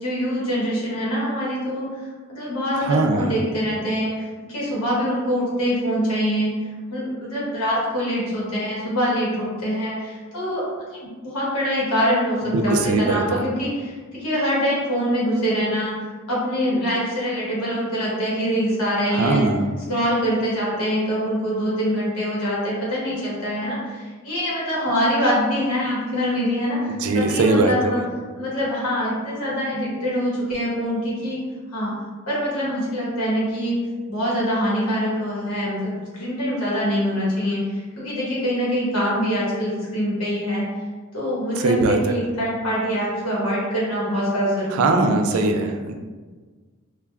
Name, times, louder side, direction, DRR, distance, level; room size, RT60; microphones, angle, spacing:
voice 1, 0.0-1.9 2.3-6.5 6.9-10.6 10.9-19.5 19.9-28.0 28.3-31.4 31.7-31.9 32.3-33.8 34.1-40.6 41.1-45.6, equal, 90° left, -6 dB, 1.1 m, -24 dB
voice 2, 2.8-3.4 12.4-13.4 19.1-19.7 26.9-27.7 41.6-42.1 44.7-46.0, right 3 dB, 75° right, 5 dB, 0.3 m, -21 dB
3.3 x 2.2 x 2.2 m, 1.4 s
head